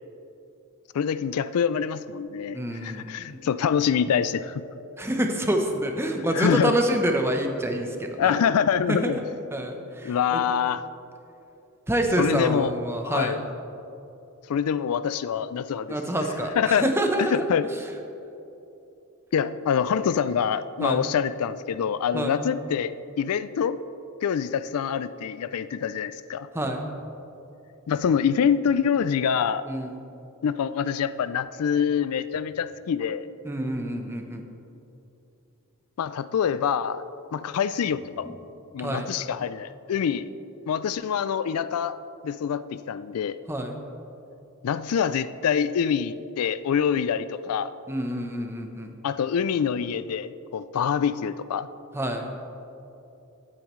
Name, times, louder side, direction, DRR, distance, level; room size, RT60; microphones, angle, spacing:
voice 1, 0.9-4.6 6.3-6.8 8.2-9.2 10.0-10.8 12.2-12.7 13.0-13.4 14.5-16.0 16.6-16.9 17.2-17.7 19.3-22.9 23.2-23.8 24.2-26.5 27.9-29.6 30.4-33.3 36.0-37.0 37.3-38.3 38.7-40.3 40.7-42.0 42.2-43.4 44.6-47.7 49.0-51.7, left 7 dB, 80° left, 14 dB, 0.4 m, -25 dB
voice 2, 2.5-3.4 5.0-8.4 8.9-9.2 9.5-10.4 11.9-13.4 15.9-17.4 20.8-21.1 22.1-22.4 26.5-26.9 29.7-30.0 33.4-34.4 38.2-38.3 38.8-39.1 43.5-43.8 47.9-48.9 51.9-52.3, right 1 dB, 10° right, 3 dB, 0.8 m, -27 dB
16.5 x 8.5 x 3.1 m, 2.9 s
head